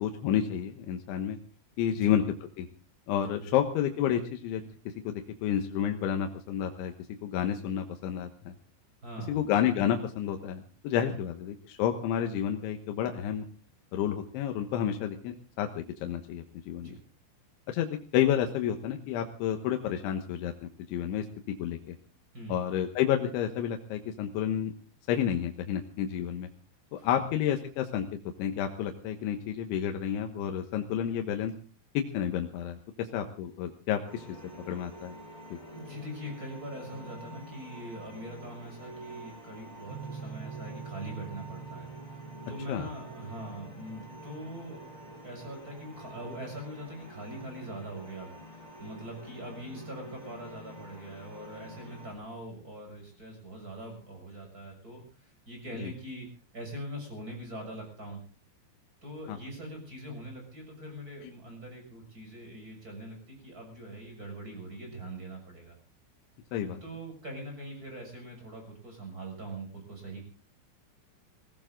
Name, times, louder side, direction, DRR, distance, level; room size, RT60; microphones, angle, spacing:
voice 1, 0.0-1.4 1.8-2.2 2.6-2.7 3.1-4.6 5.1-6.9 7.2-8.5 9.3-13.5 13.9-17.0 17.7-21.3 21.6-22.0 22.5-24.7 25.1-26.5 26.9-28.1 28.4-31.5 32.0-34.3 34.7-35.1 35.5-35.6 42.7-42.9 55.8-55.9 59.3-59.4 66.5-66.8, left 9 dB, 80° left, 5 dB, 3.6 m, -30 dB
voice 2, 9.0-9.4 16.8-17.0 22.3-22.6 27.0-27.1 35.6-42.2 42.5-44.9 45.2-56.3 56.5-58.2 59.0-65.7 66.8-70.2, right 1 dB, 20° right, 3 dB, 6.8 m, -42 dB
sound 1, 34.1-52.1, equal, 15° left, 7.7 m, -48 dB
sound 2, 39.9-48.6, right 6 dB, 80° right, 6.3 m, -47 dB
21.5 x 16.5 x 3.8 m, 0.35 s
omnidirectional pair, 5.3 m